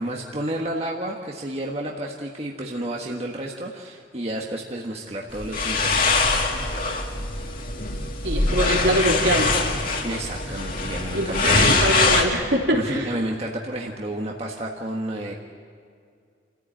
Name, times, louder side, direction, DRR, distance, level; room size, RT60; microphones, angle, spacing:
voice 1, 0.0-6.8 10.0-11.7 12.7-15.3, right 1 dB, 35° right, -1 dB, 1.6 m, -31 dB
sound 1, 5.3-12.2, left 3 dB, 50° left, 2.3 m, -23 dB
voice 2, 8.2-9.5 11.1-13.1, right 1 dB, 70° right, -1 dB, 3.6 m, -23 dB
28.5 x 15.0 x 9.0 m, 2.2 s
head